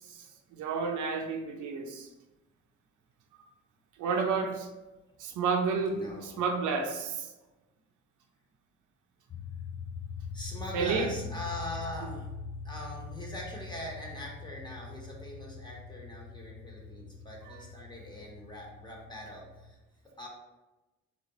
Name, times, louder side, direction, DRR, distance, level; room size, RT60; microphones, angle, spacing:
voice 1, 0.5-2.1 3.3-3.4 4.0-4.7 5.2-7.3 10.7-11.1 17.5-17.6, right 5 dB, 80° right, 3 dB, 0.7 m, -31 dB
voice 2, 5.9-6.4 10.3-12.3 12.6-19.8 20.2-20.3, left 1 dB, 15° left, -2 dB, 1.3 m, -42 dB
sound 1, 9.3-19.7, left 5 dB, 30° left, 0.4 m, -43 dB
4.1 x 3.6 x 3.1 m, 1.1 s
cardioid pair, 90°, 30 cm